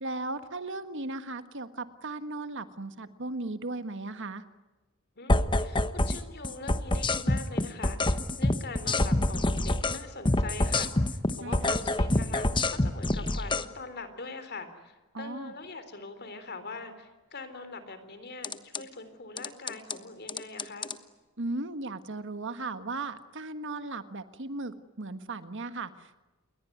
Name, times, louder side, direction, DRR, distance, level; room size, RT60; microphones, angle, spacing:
voice 1, 0.0-4.4 11.4-11.8 15.1-15.5 21.4-26.2, right 2 dB, 60° right, 10 dB, 1.5 m, -36 dB
voice 2, 5.2-20.9, left 3 dB, 50° left, 11 dB, 3.7 m, -43 dB
sound 1, 5.3-6.2 6.4-10.0 10.3-13.6 18.4-18.8 19.4-20.0 20.3-21.0, left 2 dB, 20° left, 1.2 m, -26 dB
28.5 x 22.0 x 9.4 m, 1.2 s
head